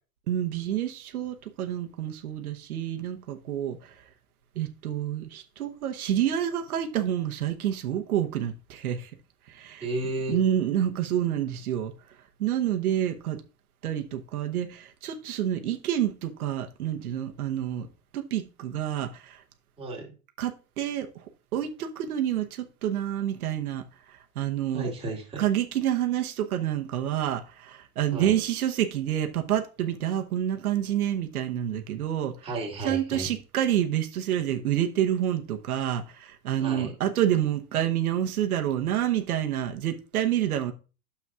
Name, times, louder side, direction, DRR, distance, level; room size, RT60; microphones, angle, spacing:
voice 1, 0.3-3.8 4.6-9.1 9.5-9.9 10.3-11.9 12.4-13.4 13.8-17.9 18.1-19.4 20.4-21.1 21.5-23.8 24.4-24.9 25.4-32.3 32.8-40.7, right 11 dB, 90° right, 1.1 m, -28 dB
voice 2, 9.8-10.4 19.8-20.1 24.7-25.4 28.1-28.4 32.4-33.3 36.6-36.9, right 2 dB, 15° right, 2.3 m, -33 dB
9.5 x 7.1 x 2.4 m
hypercardioid pair, 130°, 43 cm